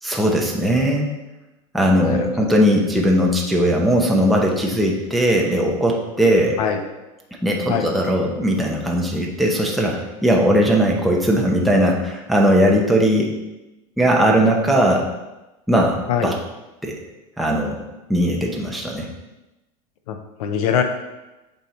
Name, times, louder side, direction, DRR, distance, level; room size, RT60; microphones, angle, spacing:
voice 1, 0.0-1.1 1.7-6.6 7.4-13.3 14.0-15.1 15.7-16.3 16.8-17.0 17.4-17.8 18.1-19.1, equal, ahead, -2 dB, 0.8 m, -19 dB
voice 2, 20.1-20.8, left 8 dB, 85° left, 6 dB, 0.9 m, -22 dB
7.3 x 3.6 x 4.3 m, 1.0 s
supercardioid pair, 135°, 18 cm